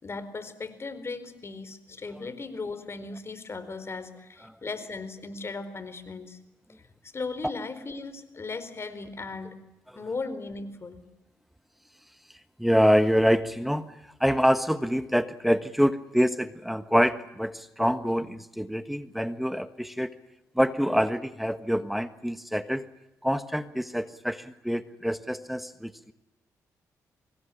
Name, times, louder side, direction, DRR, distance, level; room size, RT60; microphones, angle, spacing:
voice 1, 0.0-6.4 6.8-9.6 9.9-11.0, left 3 dB, 40° left, 13 dB, 4.4 m, -37 dB
voice 2, 12.6-20.2 20.5-22.9 23.2-26.1, equal, ahead, 11 dB, 1.4 m, -26 dB
25.0 x 21.0 x 10.0 m, 0.93 s
supercardioid pair, 60°, 6 cm